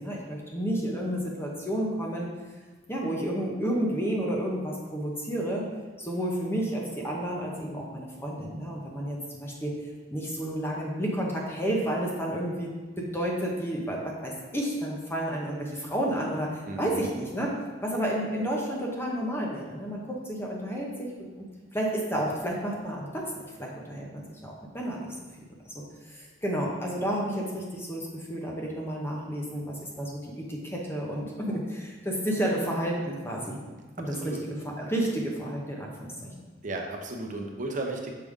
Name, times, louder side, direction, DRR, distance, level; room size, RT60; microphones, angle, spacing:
voice 1, 0.0-2.3 2.9-5.7 6.0-9.7 10.1-17.5 17.8-21.1 21.4-21.5 21.7-25.2 25.7-33.6 34.0-36.3, right 1 dB, 15° left, -2 dB, 0.8 m, -31 dB
voice 2, 16.7-17.0 34.1-34.4 36.6-38.1, right 2 dB, 45° right, 2 dB, 0.8 m, -34 dB
6.6 x 5.1 x 3.6 m, 1.3 s
head